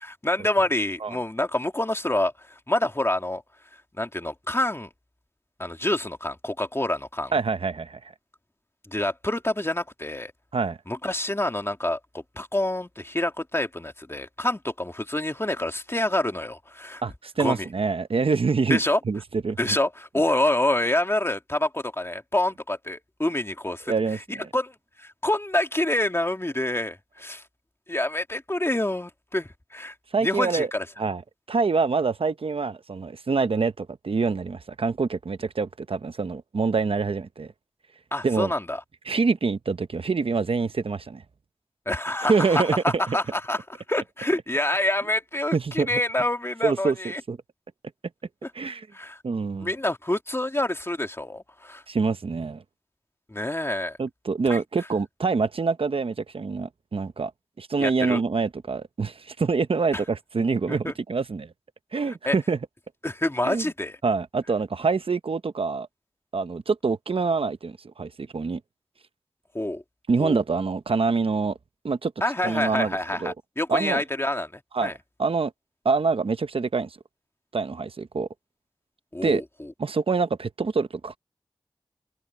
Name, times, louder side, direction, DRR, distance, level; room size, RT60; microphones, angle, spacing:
voice 1, 0.0-3.4 4.0-4.9 5.6-7.3 8.9-10.3 10.9-17.0 17.4-17.7 18.7-19.0 19.6-23.9 24.5-27.4 27.9-29.9 30.2-30.9 38.1-38.8 41.9-43.6 43.9-47.2 48.9-49.2 49.6-51.8 53.3-54.0 54.5-54.6 57.8-58.2 59.9-60.0 60.7-60.9 62.3-62.4 63.0-64.0 69.5-69.8 70.2-70.4 72.2-74.9 79.1-79.4, left 1 dB, 25° left, 2.5 m, -27 dB
voice 2, 7.3-8.0 10.5-10.8 17.0-18.8 19.0-19.8 23.9-24.5 30.1-30.7 31.0-31.2 31.5-37.5 38.2-38.5 39.1-41.2 42.3-42.7 43.1-43.2 45.5-45.9 46.6-47.4 48.5-48.9 49.2-49.7 51.9-52.6 54.0-57.3 57.6-61.5 61.9-62.6 63.4-63.7 64.0-65.9 66.3-68.6 70.1-71.6 71.8-72.1 72.4-73.3 73.7-74.0 74.7-74.9 75.2-75.5 75.8-77.0 77.5-78.3 79.2-79.4 79.8-81.2, right 4 dB, 85° right, 0.8 m, -25 dB
cardioid pair, 40°, 9 cm